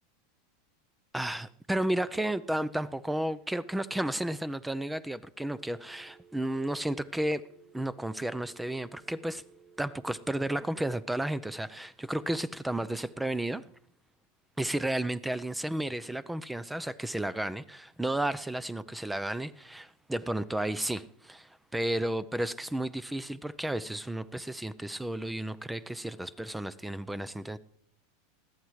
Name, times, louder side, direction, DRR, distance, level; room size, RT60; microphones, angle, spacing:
voice 1, 1.1-7.4 7.7-9.4 9.8-13.6 14.6-27.6, right 1 dB, 5° right, 17 dB, 0.5 m, -33 dB
Telephone, 5.5-10.5, right 6 dB, 55° right, 2.2 m, -58 dB
20.5 x 13.5 x 3.2 m, 0.67 s
hypercardioid pair, 95°, 0 cm